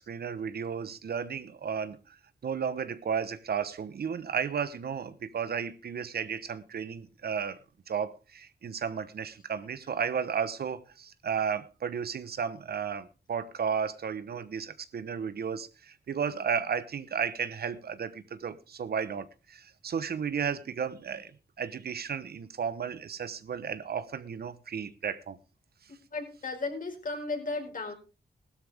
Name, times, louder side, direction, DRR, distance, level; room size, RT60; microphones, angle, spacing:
voice 1, 0.0-2.2 2.4-7.6 7.9-21.3 21.6-25.4, right 7 dB, 70° right, 1.1 m, -33 dB
voice 2, 26.1-28.0, left 3 dB, 55° left, 4.8 m, -34 dB
16.0 x 12.5 x 3.5 m
cardioid pair, 50°, 17 cm